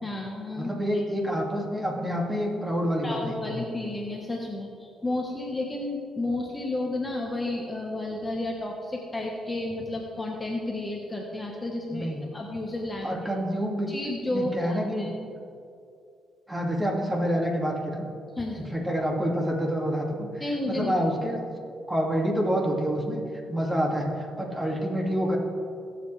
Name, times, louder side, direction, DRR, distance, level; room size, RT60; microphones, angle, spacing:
voice 1, 0.0-1.0 3.0-13.3 13.9-15.1 18.4-18.7 20.4-20.9, left 2 dB, 15° left, 0 dB, 1.3 m, -32 dB
voice 2, 0.6-3.6 11.9-12.2 13.0-13.9 14.3-15.1 16.5-18.0 18.5-21.4 21.9-23.2 23.5-25.4, equal, 15° right, -1 dB, 2.4 m, -27 dB
21.5 x 7.7 x 3.4 m, 2.4 s
cardioid pair, 90°, 0 cm